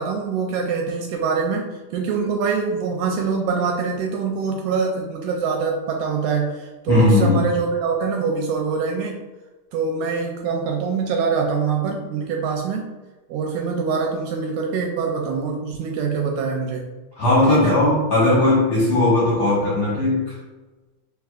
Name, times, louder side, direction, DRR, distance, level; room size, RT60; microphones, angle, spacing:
voice 1, 0.0-9.2 9.7-12.9 13.3-16.9 17.5-17.8, right 5 dB, 80° right, 1 dB, 1.8 m, -24 dB
voice 2, 6.9-7.4 17.2-20.3, left 2 dB, 60° left, -8 dB, 1.6 m, -18 dB
4.6 x 3.4 x 2.3 m, 1.2 s
omnidirectional pair, 3.7 m